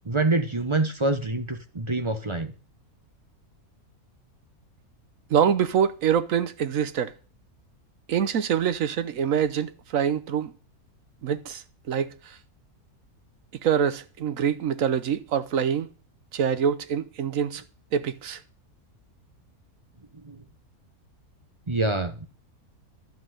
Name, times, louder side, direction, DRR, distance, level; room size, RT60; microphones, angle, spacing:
voice 1, 0.1-2.5 20.3-20.4 21.7-22.3, right 2 dB, 25° right, 0.8 m, -26 dB
voice 2, 5.3-7.1 8.1-10.5 11.2-12.1 13.6-15.9 16.3-17.6 17.9-18.4, right 8 dB, 65° right, 1.2 m, -25 dB
11.5 x 6.3 x 7.9 m
omnidirectional pair, 1.6 m